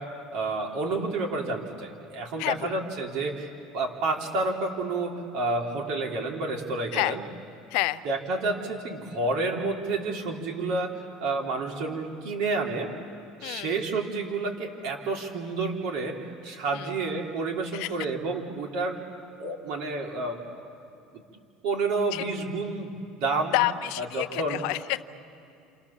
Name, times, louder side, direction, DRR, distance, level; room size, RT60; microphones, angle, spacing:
voice 1, 0.0-3.5 3.7-7.2 8.0-12.9 13.4-19.0 19.4-20.4 21.1-21.2 21.6-22.9 23.2-23.6 24.0-24.6, right 3 dB, 55° right, 1 dB, 3.7 m, -30 dB
voice 2, 2.4-2.8 6.9-7.2 7.7-8.0 13.4-13.8 16.7-16.9 17.7-17.9 22.1-22.3 23.5-25.0, left 18 dB, 60° left, 14 dB, 0.6 m, -28 dB
28.5 x 28.5 x 7.3 m, 2.5 s
cardioid pair, 180°, 0 cm